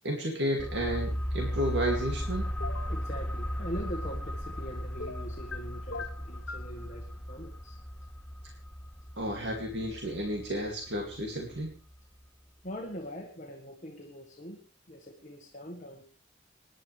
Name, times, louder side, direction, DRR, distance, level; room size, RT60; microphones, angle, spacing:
voice 1, 0.0-2.5 9.2-11.8, equal, 65° right, 0 dB, 2.5 m, -32 dB
sound 1, 0.6-12.0 12.2-12.3, equal, 10° left, 0.6 m, -36 dB
App Ui Sound, 2.6-3.0 5.0-5.6 5.9-6.7, left 4 dB, 85° left, 1.1 m, -40 dB
voice 2, 2.9-7.8 12.6-16.0, equal, 40° left, 0 dB, 1.7 m, -42 dB
27.0 x 10.5 x 3.4 m, 0.38 s
head